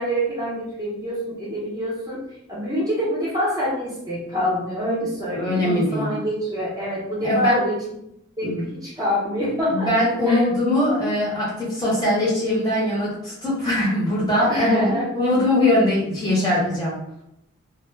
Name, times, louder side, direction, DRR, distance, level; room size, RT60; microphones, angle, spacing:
voice 1, 0.0-2.2 2.5-7.7 8.4-9.9 10.3-10.4 14.5-15.1, equal, 15° right, -7 dB, 0.7 m, -26 dB
voice 2, 5.3-6.1 7.2-7.6 8.4-8.6 9.7-16.9, left 1 dB, 20° left, -7 dB, 0.7 m, -21 dB
2.1 x 2.1 x 3.1 m, 0.79 s
head